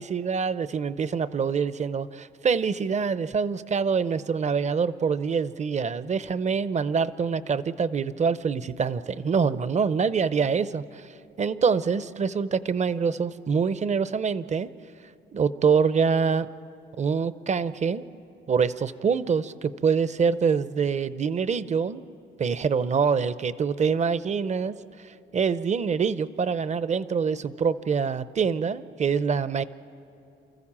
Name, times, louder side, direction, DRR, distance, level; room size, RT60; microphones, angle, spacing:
voice 1, 0.0-11.1 11.4-14.7 15.3-16.5 17.0-18.0 18.5-22.0 22.4-24.8 25.3-29.6, right 6 dB, 35° right, 15 dB, 0.7 m, -25 dB
29.5 x 14.0 x 7.4 m, 2.7 s
cardioid pair, 90°, 20 cm